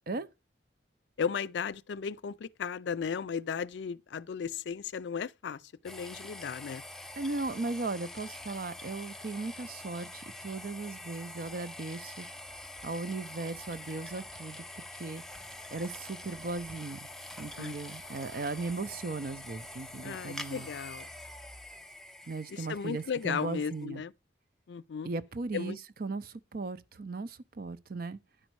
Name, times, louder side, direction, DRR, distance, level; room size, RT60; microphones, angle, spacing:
voice 1, 1.2-6.8 17.6-17.7 20.0-21.1 22.5-24.1 24.7-25.1 25.5-25.8, left 6 dB, 70° left, 0.4 m, -35 dB
sound 1, 5.8-23.8, left 1 dB, ahead, 0.4 m, -46 dB
voice 2, 7.2-12.3 12.8-15.2 15.7-17.1 17.4-20.7 22.3-24.0 25.0-28.2, right 3 dB, 55° right, 0.6 m, -37 dB
10.0 x 5.3 x 4.6 m
head